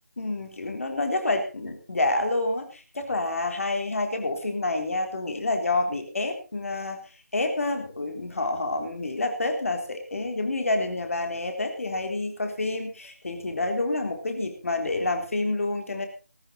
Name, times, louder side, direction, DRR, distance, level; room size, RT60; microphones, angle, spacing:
voice 1, 0.2-7.0 7.3-16.1, left 2 dB, 55° left, 5 dB, 3.8 m, -28 dB
17.5 x 14.0 x 4.1 m, 0.34 s
figure-of-eight pair, 170°, 9 cm